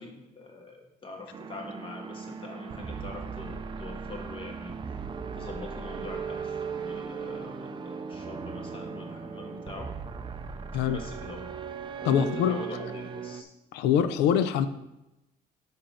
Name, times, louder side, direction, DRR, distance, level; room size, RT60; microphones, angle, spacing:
voice 1, 0.0-4.8 5.4-9.9 10.8-11.5 12.0-13.5, left 2 dB, 30° left, 2 dB, 1.4 m, -43 dB
sound 1, 1.3-13.4, right 6 dB, 30° right, 0.4 m, -38 dB
voice 2, 12.0-12.6 13.7-14.7, left 9 dB, 85° left, 12 dB, 0.5 m, -24 dB
6.0 x 5.3 x 4.2 m, 0.92 s
cardioid pair, 110°, 17 cm